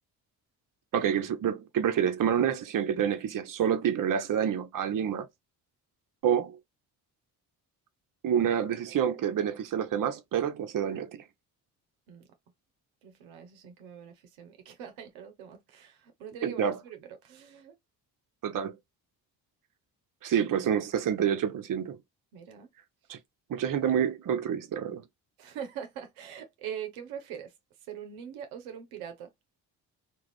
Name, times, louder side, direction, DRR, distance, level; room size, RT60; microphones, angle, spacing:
voice 1, 0.9-5.3 6.2-6.6 8.2-11.2 16.4-16.8 18.4-18.7 20.2-22.0 23.1-23.2 23.5-25.0, right 8 dB, 45° right, 0.7 m, -28 dB
voice 2, 13.0-17.8 22.3-22.7 25.4-27.5 27.9-29.3, right 8 dB, 80° right, 0.7 m, -42 dB
2.4 x 2.3 x 3.3 m
hypercardioid pair, 45°, 47 cm